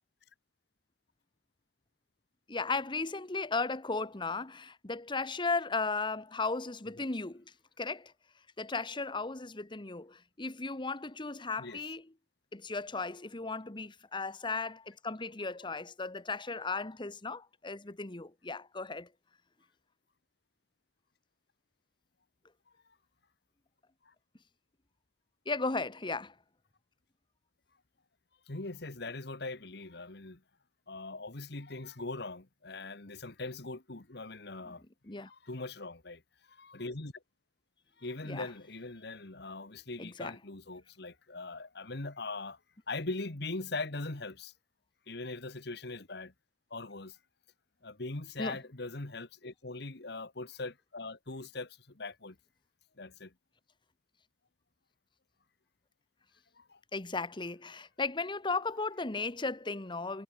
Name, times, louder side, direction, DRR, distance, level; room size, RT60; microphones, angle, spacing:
voice 1, 2.5-7.4 7.8-8.1 8.6-12.0 12.5-19.1 25.4-26.3 34.7-34.8 35.0-35.3 38.2-38.5 40.0-40.3 48.4-48.6 56.9-60.2, left 3 dB, 25° left, 1.2 m, -36 dB
voice 2, 28.5-30.4 30.9-34.8 35.3-36.2 36.5-37.1 38.0-42.6 42.9-44.5 45.1-46.3 46.7-47.2 47.8-52.4 53.0-53.3 56.6-56.8, left 3 dB, 65° left, 1.8 m, -41 dB
head